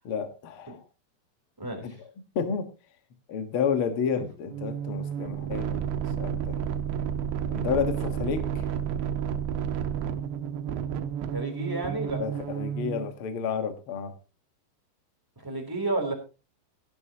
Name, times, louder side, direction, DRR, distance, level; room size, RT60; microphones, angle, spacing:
voice 1, 0.0-0.8 1.8-1.9 2.3-2.7 3.3-5.8 6.2-6.6 7.5-8.7 12.2-14.1, left 7 dB, 80° left, 7 dB, 1.2 m, -30 dB
sound 1, 4.5-13.1, right 8 dB, 85° right, 3.1 m, -31 dB
voice 2, 11.3-12.2 15.4-16.1, right 2 dB, 5° right, 3 dB, 2.8 m, -31 dB
17.5 x 10.5 x 2.9 m, 0.32 s
omnidirectional pair, 5.0 m